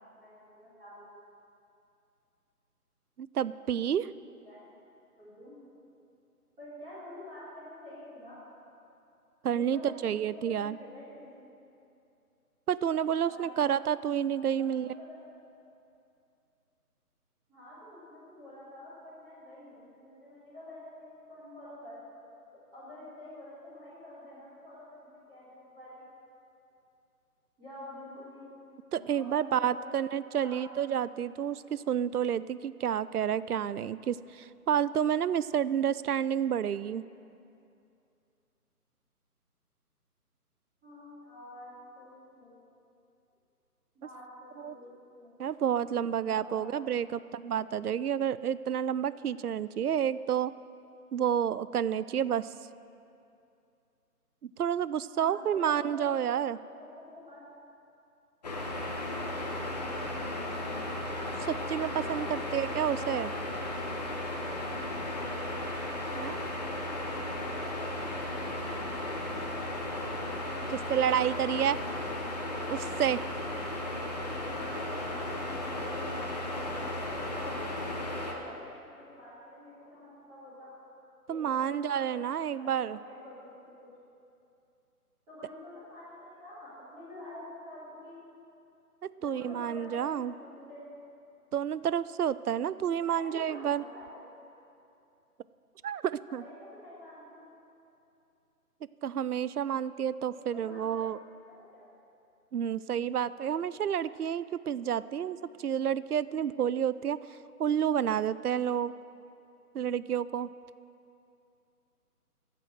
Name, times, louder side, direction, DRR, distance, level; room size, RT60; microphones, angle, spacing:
voice 1, 0.2-1.1 4.4-4.7 5.2-5.5 6.6-8.4 9.5-9.9 10.4-11.3 13.2-13.8 14.6-15.2 17.5-22.0 22.7-26.0 27.6-28.5 28.8-30.9 40.8-42.6 43.9-45.4 45.9-46.6 47.0-47.3 55.1-56.1 56.6-56.9 57.1-57.4 62.1-62.5 62.9-63.1 67.6-67.9 69.9-70.3 74.5-78.7 79.0-80.7 81.3-83.9 85.3-88.1 89.2-90.9 93.0-94.2 96.3-97.5 100.3-101.1 101.6-101.8, left 1 dB, 10° right, -12 dB, 3.1 m, -48 dB
voice 2, 3.2-4.1 9.4-10.8 12.7-15.0 28.9-37.0 44.6-44.7 45.4-50.5 51.1-52.5 54.4-56.6 61.5-63.3 66.1-66.4 70.7-71.8 72.7-73.3 81.3-83.0 89.2-90.3 91.5-93.8 95.8-96.4 99.0-101.2 102.5-107.2 107.6-108.9 109.7-110.5, right 9 dB, 70° right, 17 dB, 0.5 m, -30 dB
sound 1, 58.4-78.3, left 1 dB, 25° left, 1.2 m, -35 dB
14.5 x 8.3 x 7.6 m, 2.7 s
figure-of-eight pair, 150°, 46 cm